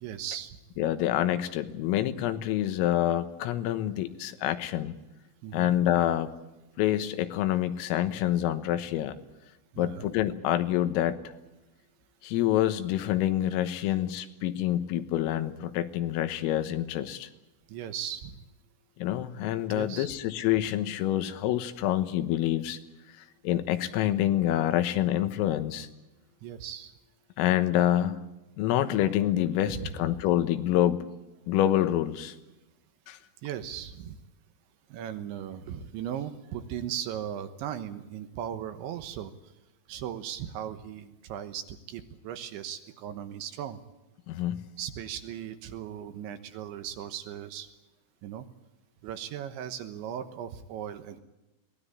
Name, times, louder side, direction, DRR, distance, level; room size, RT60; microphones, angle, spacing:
voice 1, 0.0-0.6 5.4-5.7 9.7-10.1 17.7-18.4 19.7-20.1 26.4-26.9 29.7-29.9 33.4-34.2 34.9-39.3 39.9-43.8 44.8-47.7 48.2-48.5 49.0-51.2, right 10 dB, 75° right, 9 dB, 3.2 m, -37 dB
voice 2, 0.8-4.9 5.5-6.3 6.8-9.2 9.8-11.2 12.2-17.3 19.0-22.8 23.1-25.9 27.4-28.2 28.6-31.1 31.5-32.4 33.1-33.2 44.3-44.6, left 12 dB, 85° left, 10 dB, 3.8 m, -27 dB
23.0 x 18.5 x 8.7 m, 1.0 s
omnidirectional pair, 5.9 m